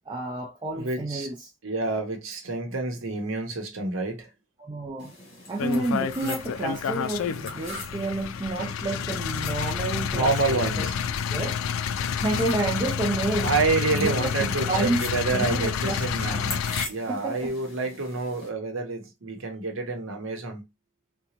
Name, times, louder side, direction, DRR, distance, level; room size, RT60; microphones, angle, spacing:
voice 1, 0.1-1.5 4.6-5.1 5.5-10.9 11.3-11.6 12.2-13.6 13.9-15.0 15.3-16.4 17.1-17.5, right 2 dB, 20° right, 0.4 m, -30 dB
voice 2, 0.7-1.3 1.6-4.3 10.1-11.0 13.4-16.6 16.9-20.7, right 3 dB, 80° right, 0.9 m, -28 dB
sound 1, 5.0-18.5, left 2 dB, 50° left, 1.4 m, -42 dB
sound 2, 5.6-16.9, left 7 dB, 90° left, 0.3 m, -29 dB
3.8 x 2.2 x 2.9 m
head